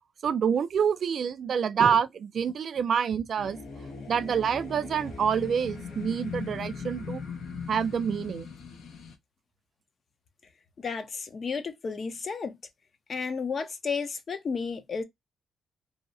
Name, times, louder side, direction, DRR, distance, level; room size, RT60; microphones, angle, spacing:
voice 1, 0.2-3.6 4.1-7.2 7.7-8.5, right 7 dB, 50° right, 0.3 m, -27 dB
sound 1, 3.4-9.1, left 5 dB, 80° left, 0.7 m, -39 dB
voice 2, 10.8-12.6 13.1-15.0, left 5 dB, 40° left, 0.5 m, -32 dB
2.7 x 2.0 x 2.5 m
cardioid pair, 130°, 0 cm